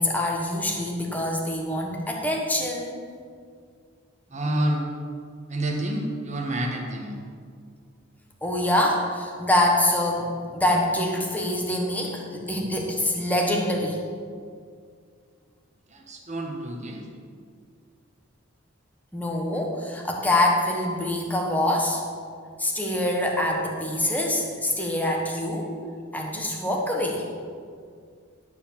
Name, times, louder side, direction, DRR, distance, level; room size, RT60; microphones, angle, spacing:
voice 1, 0.0-3.0 8.4-14.0 19.1-22.0 22.6-25.7 26.1-27.3, left 1 dB, 10° left, 0 dB, 1.3 m, -25 dB
voice 2, 4.3-4.8 5.5-7.2 15.9-17.1, right 1 dB, 35° right, 1 dB, 1.4 m, -28 dB
11.5 x 4.8 x 7.3 m, 2.1 s
head